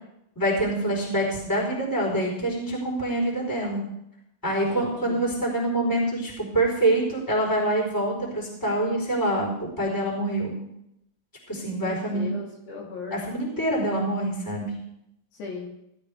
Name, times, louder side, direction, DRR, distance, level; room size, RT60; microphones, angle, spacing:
voice 1, 0.3-3.8 4.4-10.6 11.5-12.3 13.1-14.7, right 1 dB, 5° left, -3 dB, 3.4 m, -25 dB
voice 2, 4.5-5.2 11.7-13.2 15.3-15.7, left 4 dB, 60° left, -2 dB, 4.0 m, -38 dB
17.0 x 12.5 x 3.5 m, 0.80 s
omnidirectional pair, 5.7 m